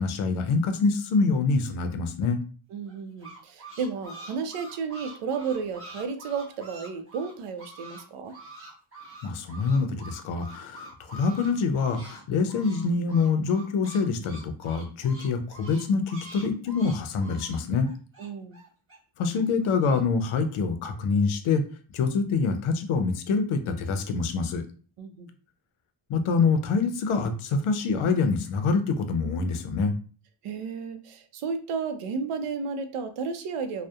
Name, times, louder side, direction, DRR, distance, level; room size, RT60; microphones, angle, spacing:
voice 1, 0.0-2.4 9.2-17.9 19.2-21.6 21.9-24.6 26.1-29.9, left 4 dB, 80° left, 7 dB, 0.6 m, -25 dB
voice 2, 2.7-8.3 18.2-18.6 25.0-25.3 30.4-33.9, right 5 dB, 85° right, 8 dB, 0.6 m, -33 dB
sound 1, 2.9-8.0 8.3-12.2 12.5-19.0 19.3-20.0, right 2 dB, 25° right, 0.9 m, -45 dB
2.6 x 2.1 x 2.3 m, 0.40 s
wide cardioid pair, 160°, 50 cm